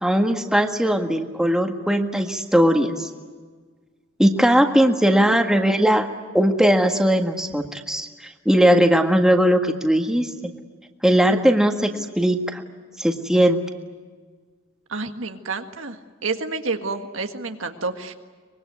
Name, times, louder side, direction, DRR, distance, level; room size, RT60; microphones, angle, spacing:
voice 1, 0.0-3.1 4.2-6.1 6.3-8.1 8.4-10.5 11.0-12.6 13.0-13.6, equal, 5° right, 4 dB, 1.7 m, -19 dB
voice 2, 14.9-16.0 16.2-18.1, right 3 dB, 85° right, 6 dB, 1.8 m, -29 dB
24.0 x 22.5 x 9.5 m, 1.5 s
head